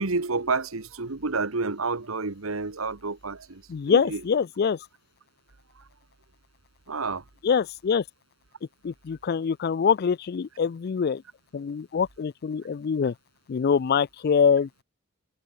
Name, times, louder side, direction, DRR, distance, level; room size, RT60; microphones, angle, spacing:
voice 1, 0.0-3.6 3.9-4.2 6.9-7.2, right 3 dB, 85° right, 1.5 m, -29 dB
voice 2, 3.7-4.8 7.4-8.0 8.8-11.2 11.5-13.1 13.5-14.8, left 6 dB, 50° left, 0.4 m, -24 dB
head